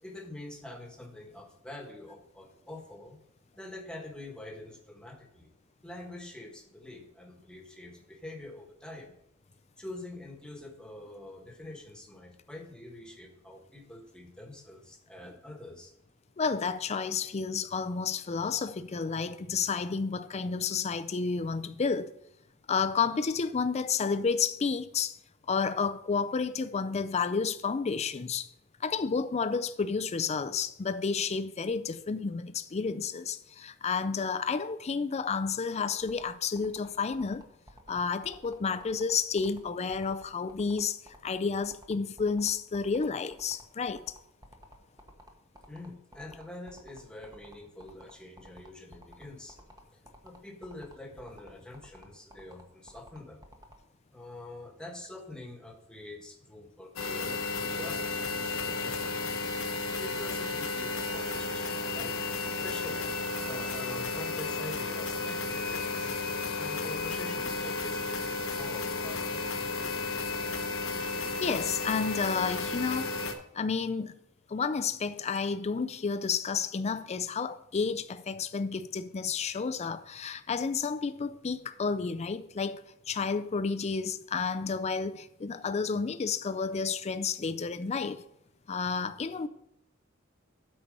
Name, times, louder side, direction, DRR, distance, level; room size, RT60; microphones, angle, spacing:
voice 1, 0.0-3.2 3.5-5.5 5.8-9.1 9.8-15.9 45.7-49.6 50.2-53.4 54.1-59.2 60.0-62.2 62.5-63.1 63.4-66.1 66.6-70.0, left 1 dB, 5° left, 1.4 m, -45 dB
voice 2, 16.4-22.1 22.7-25.2 25.5-28.5 28.8-37.4 37.9-44.0 71.4-73.2 73.5-74.2 74.5-82.8 83.1-88.2 88.7-89.5, left 5 dB, 30° left, 0.4 m, -31 dB
sound 1, 36.0-53.7, equal, 20° right, 1.2 m, -52 dB
sound 2, 57.0-73.3, left 3 dB, 80° left, 1.1 m, -33 dB
8.8 x 4.4 x 6.5 m
head